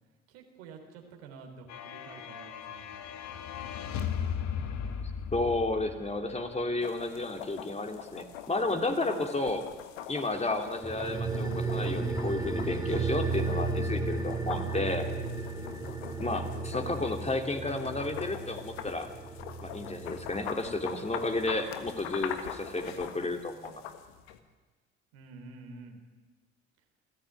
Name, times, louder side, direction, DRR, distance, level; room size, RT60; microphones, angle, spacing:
voice 1, 0.3-3.0 25.1-26.0, right 4 dB, 85° right, 3 dB, 3.9 m, -49 dB
sound 1, 1.7-6.4, left 7 dB, 65° left, 1.9 m, -36 dB
voice 2, 5.3-9.6 10.1-15.0 16.2-19.1 19.6-23.8, left 2 dB, 20° left, 4 dB, 3.2 m, -32 dB
sound 2, 6.8-24.4, left 10 dB, 85° left, 1.5 m, -43 dB
sound 3, 10.8-21.7 22.0-22.1, right 3 dB, 10° right, 4.5 m, -34 dB
27.0 x 14.5 x 9.9 m, 1.4 s
hypercardioid pair, 60°, 30 cm